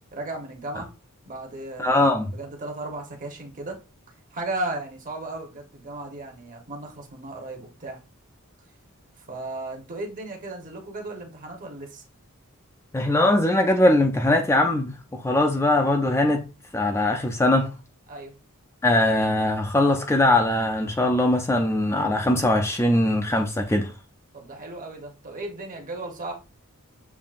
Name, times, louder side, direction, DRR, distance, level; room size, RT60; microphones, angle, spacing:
voice 1, 0.1-0.9 1.3-3.8 4.3-8.0 9.2-12.0 18.1-18.4 24.3-26.3, right 2 dB, 40° right, 1.1 m, -35 dB
voice 2, 1.8-2.3 12.9-16.5 16.7-17.7 18.8-23.9, left 1 dB, 10° left, 0.4 m, -21 dB
7.0 x 2.7 x 2.5 m
head